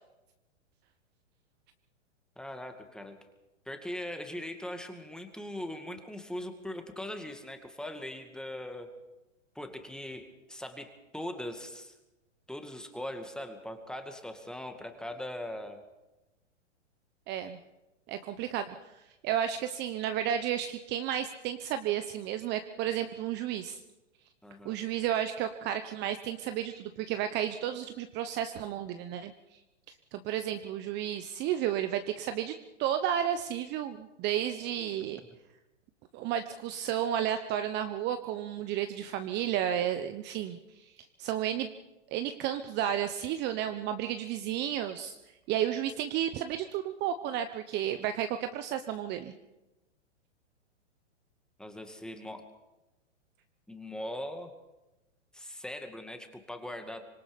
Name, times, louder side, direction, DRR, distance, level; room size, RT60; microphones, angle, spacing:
voice 1, 2.4-3.2 3.7-8.9 9.6-12.0 12.5-15.8 24.4-24.8 51.6-52.5 53.7-54.5 55.3-57.1, left 1 dB, ahead, 5 dB, 2.2 m, -40 dB
voice 2, 17.3-17.6 18.1-18.8 19.2-23.8 24.6-29.3 30.1-35.2 36.1-40.9 41.2-41.7 42.1-45.2 45.5-49.3, right 10 dB, 30° right, 9 dB, 1.0 m, -32 dB
25.5 x 21.5 x 5.3 m, 0.99 s
hypercardioid pair, 130°, 36 cm